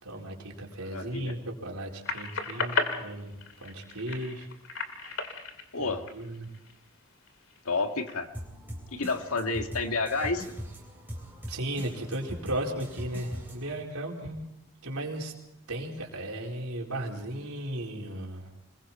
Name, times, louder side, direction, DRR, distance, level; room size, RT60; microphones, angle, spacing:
voice 1, 0.0-3.3 3.6-4.5 5.0-5.4 5.8-6.5 11.5-14.4 14.8-15.3 15.7-18.5, right 1 dB, 85° right, 0 dB, 4.5 m, -36 dB
voice 2, 0.8-1.3 5.7-6.1 7.7-8.3 8.9-10.4, left 3 dB, 80° left, 5 dB, 2.0 m, -30 dB
sound 1, 2.0-6.8 7.3-8.1, left 4 dB, 60° left, 2.6 m, -34 dB
sound 2, 8.3-13.8, equal, 10° right, 3.6 m, -41 dB
28.0 x 21.5 x 4.4 m, 0.86 s
head